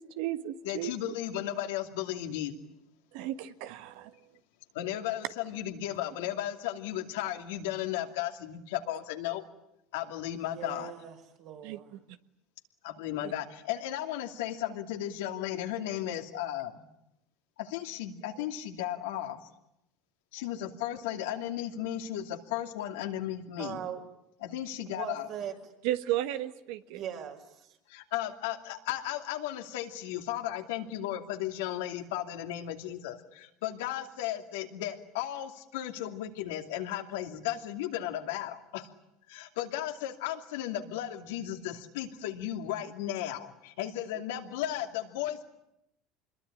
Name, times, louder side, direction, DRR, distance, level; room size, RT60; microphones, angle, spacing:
voice 1, 0.0-0.9 3.1-4.1 11.6-12.0 25.8-27.0, right 13 dB, 75° right, 11 dB, 1.5 m, -34 dB
voice 2, 0.6-2.5 4.7-9.4 9.9-10.9 12.8-16.7 17.6-19.5 20.3-23.8 24.4-25.3 27.9-38.9 39.3-45.4, left 12 dB, 85° left, 5 dB, 2.6 m, -35 dB
voice 3, 10.4-11.9 23.6-24.0 24.9-25.5 26.9-27.7, right 9 dB, 60° right, 3 dB, 6.3 m, -40 dB
26.0 x 22.0 x 9.9 m, 0.84 s
supercardioid pair, 95°, 0 cm